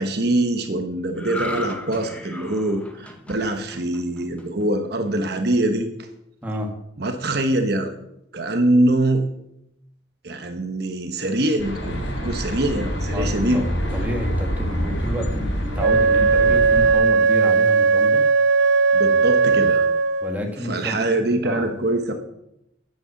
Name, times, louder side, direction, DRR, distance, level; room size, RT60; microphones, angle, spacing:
voice 1, 0.0-5.9 7.0-7.9 8.3-9.2 10.2-13.7 18.9-19.8 20.6-22.1, right 1 dB, 55° right, 5 dB, 1.1 m, -23 dB
sound 1, 1.2-4.6 5.1-5.3, left 1 dB, 5° left, 1.2 m, -35 dB
voice 2, 6.4-6.7 13.1-13.7 13.9-18.2 20.2-21.1 21.4-21.7, equal, 10° right, 1 dB, 2.0 m, -30 dB
sound 2, 11.6-16.9, equal, 75° left, 3.8 m, -26 dB
Wind instrument woodwind instrument, 15.8-20.4, right 4 dB, 75° right, 0.4 m, -17 dB
9.2 x 9.1 x 7.1 m, 0.81 s
head